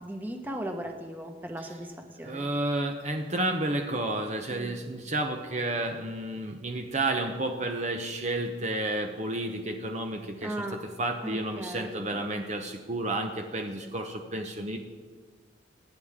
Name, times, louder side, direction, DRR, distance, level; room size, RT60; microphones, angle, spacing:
voice 1, 0.0-2.5 4.5-4.8 10.4-10.8 11.2-12.2, right 1 dB, 10° right, 3 dB, 1.2 m, -37 dB
voice 2, 2.2-14.8, right 2 dB, 35° right, 3 dB, 0.8 m, -31 dB
24.5 x 9.8 x 3.7 m, 1.5 s
head